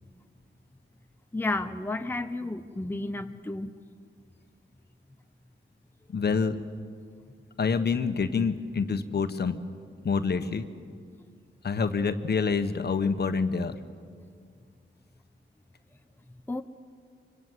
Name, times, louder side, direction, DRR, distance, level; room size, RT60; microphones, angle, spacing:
voice 1, 1.3-3.7 16.5-16.6, left 2 dB, 10° left, 7 dB, 0.8 m, -32 dB
voice 2, 6.1-6.6 7.6-9.6 10.0-10.7 11.6-13.8, left 5 dB, 55° left, 9 dB, 1.4 m, -27 dB
25.5 x 25.0 x 8.1 m, 2.2 s
wide cardioid pair, 105°, 21 cm